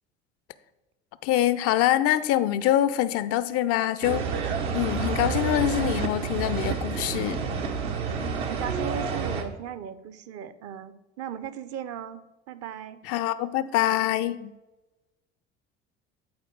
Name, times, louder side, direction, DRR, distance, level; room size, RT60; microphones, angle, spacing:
voice 1, 1.2-4.3 4.7-7.4 13.0-14.5, left 13 dB, 45° left, 15 dB, 0.4 m, -24 dB
sound 1, 4.0-9.4, right 5 dB, 70° right, 0.9 m, -29 dB
voice 2, 7.8-12.2 12.5-13.0, right 9 dB, 50° right, 13 dB, 0.6 m, -37 dB
9.4 x 4.4 x 4.5 m, 1.0 s
figure-of-eight pair, 60°, 33 cm